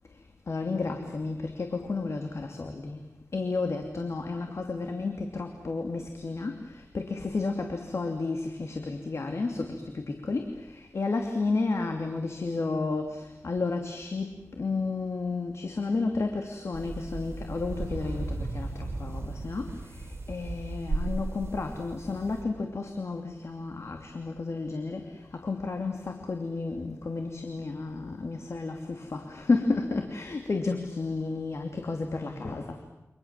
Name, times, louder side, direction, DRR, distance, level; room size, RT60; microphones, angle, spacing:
voice 1, 0.5-3.0 3.3-32.8, left 3 dB, 65° left, 4 dB, 2.8 m, -32 dB
sound 1, 16.7-22.4, right 2 dB, 50° right, 4.8 m, -35 dB
29.5 x 26.0 x 7.5 m, 0.92 s
wide cardioid pair, 100°, 5 cm